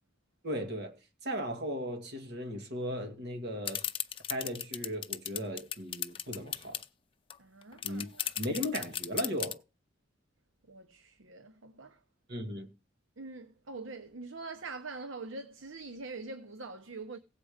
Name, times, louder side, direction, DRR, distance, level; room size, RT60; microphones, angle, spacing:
voice 1, 0.4-3.8 4.3-6.8 7.8-8.1 8.4-9.6 12.3-12.7, equal, 55° right, 1.9 m, -37 dB
sound 1, 3.6-6.8 7.3-7.4 7.6-9.5, left 10 dB, 25° left, 0.5 m, -35 dB
voice 2, 7.4-8.4 10.7-12.0 13.2-17.2, right 3 dB, 75° right, 0.9 m, -44 dB
16.5 x 7.6 x 5.1 m
head